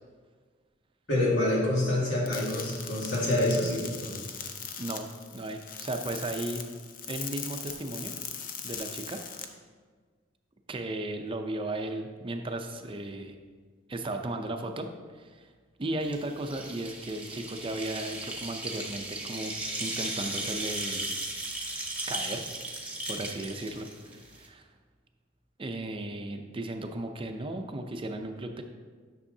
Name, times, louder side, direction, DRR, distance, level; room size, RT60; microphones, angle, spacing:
voice 1, 1.1-4.2, left 1 dB, 90° left, -5 dB, 2.2 m, -27 dB
sound 1, 2.3-9.4, left 7 dB, 50° left, 0.6 m, -40 dB
voice 2, 5.3-6.6 7.1-8.1 8.6-9.2 10.7-13.3 13.9-14.9 15.1-15.5 15.8-19.5 19.8-21.1 22.1-22.4 23.1-24.6 25.6-28.6, right 2 dB, 30° right, 5 dB, 0.5 m, -35 dB
sound 2, 16.0-24.5, right 2 dB, 5° right, 0.9 m, -36 dB
9.9 x 6.2 x 2.7 m, 1.5 s
head